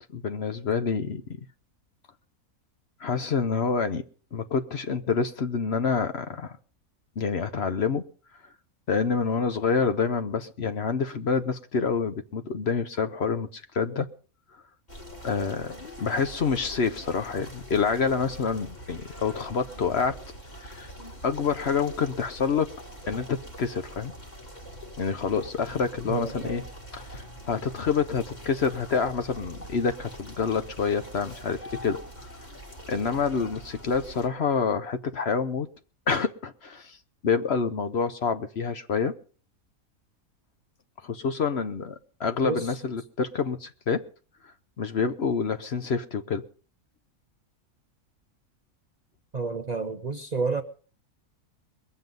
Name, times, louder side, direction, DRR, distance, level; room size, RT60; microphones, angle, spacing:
voice 1, 0.1-1.2 3.0-4.0 4.3-6.6 7.2-8.0 8.9-14.1 15.2-20.2 20.6-20.9 21.2-22.7 23.1-24.1 25.0-26.6 26.9-32.0 32.9-35.7 36.1-37.0 37.2-39.1 41.0-41.9 42.2-44.0 44.8-46.4, left 5 dB, 50° left, 1.0 m, -27 dB
sound 1, 14.9-34.3, equal, 30° left, 2.4 m, -44 dB
voice 2, 26.1-26.6 42.4-42.7 49.3-50.6, right 4 dB, 40° right, 0.7 m, -30 dB
22.0 x 7.8 x 5.3 m
omnidirectional pair, 1.5 m